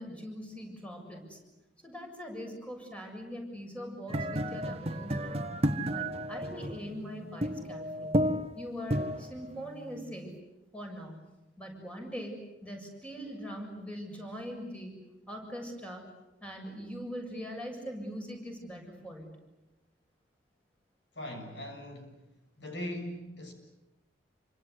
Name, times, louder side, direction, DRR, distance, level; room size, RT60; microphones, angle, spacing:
voice 1, 0.0-1.4 1.8-5.5 5.9-8.2 8.6-10.4 10.7-11.1 11.6-12.3 12.6-15.0 15.3-16.0 16.4-19.3, equal, 5° left, 2 dB, 7.2 m, -42 dB
sound 1, 4.1-10.4, equal, 35° right, 1.5 m, -33 dB
voice 2, 21.2-22.3 22.6-23.5, left 1 dB, 75° left, 4 dB, 7.1 m, -40 dB
28.5 x 25.5 x 8.3 m, 0.97 s
head